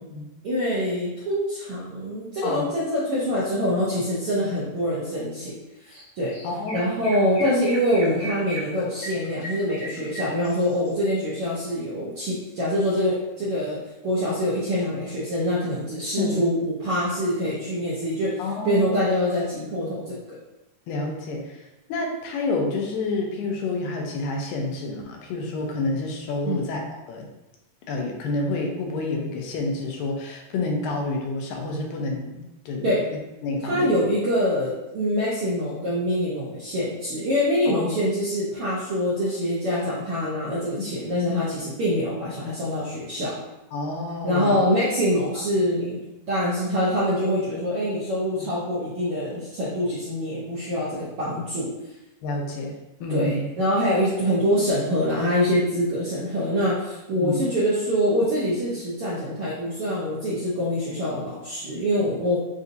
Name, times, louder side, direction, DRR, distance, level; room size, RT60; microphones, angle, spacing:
voice 1, 0.4-5.5 5.8-6.3 6.7-20.4 26.4-26.6 32.8-33.0 33.6-43.4 44.2-46.0 46.3-51.7 53.1-62.4, equal, 80° right, -8 dB, 1.2 m, -25 dB
Chirp tweet, 5.9-6.0 6.3-10.9, right 1 dB, 60° left, 1.1 m, -36 dB
voice 2, 6.4-7.1 16.2-16.5 18.4-19.0 19.8-19.9 20.9-21.6 21.9-27.3 27.9-33.0 33.4-34.0 37.7-38.0 40.8-40.9 43.7-44.6 48.4-48.5 52.2-52.8 53.0-53.4 57.2-57.4, left 2 dB, 85° left, 1 dB, 2.4 m, -29 dB
7.6 x 2.7 x 2.6 m, 0.97 s
omnidirectional pair, 3.9 m